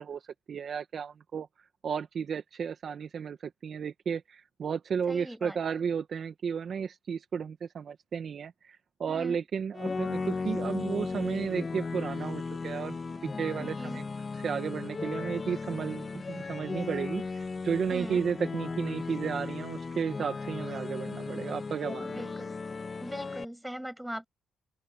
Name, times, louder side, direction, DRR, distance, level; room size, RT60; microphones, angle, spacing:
voice 1, 0.0-1.5 1.8-13.0 13.2-14.1 14.3-22.3, right 7 dB, 50° right, 2.0 m, -33 dB
voice 2, 5.1-5.6 9.1-9.4 13.6-14.0 17.9-18.2 22.0-22.6 23.0-24.3, right 1 dB, 5° right, 7.7 m, -40 dB
sound 1, 9.7-23.4, left 4 dB, 30° left, 2.1 m, -36 dB
open air
cardioid pair, 90°, 0 cm